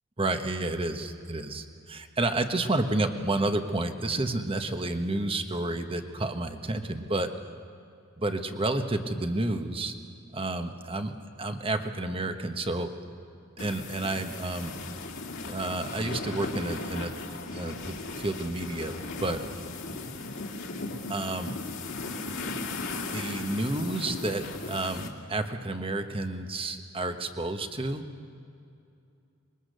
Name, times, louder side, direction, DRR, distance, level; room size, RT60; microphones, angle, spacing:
voice 1, 0.2-7.3 8.2-9.9 10.3-11.1 11.4-12.9 13.6-14.8 15.4-17.1 17.5-18.9 19.2-19.4 21.1-21.5 23.1-28.0, right 2 dB, 25° right, 7 dB, 1.2 m, -30 dB
sound 1, 13.6-25.1, left 3 dB, 65° left, 2.3 m, -37 dB
24.5 x 21.5 x 6.7 m, 2.6 s
head